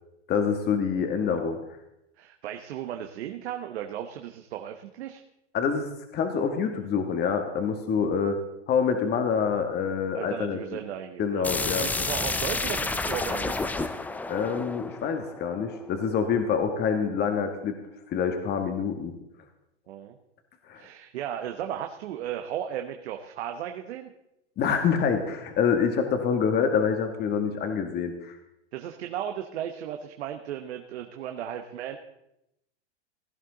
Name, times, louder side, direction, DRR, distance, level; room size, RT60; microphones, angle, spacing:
voice 1, 0.3-1.6 5.5-8.4 8.7-10.6 11.2-11.9 14.3-17.7 18.1-19.2 20.7-20.8 24.6-28.4, left 6 dB, 30° left, 6 dB, 1.5 m, -26 dB
voice 2, 2.2-5.2 10.1-13.7 19.9-20.2 20.7-24.1 28.7-32.0, right 10 dB, 70° right, 5 dB, 1.2 m, -35 dB
sound 1, 11.4-16.2, left 3 dB, 5° left, 0.4 m, -30 dB
16.5 x 11.0 x 3.9 m, 0.84 s
hypercardioid pair, 125°, 34 cm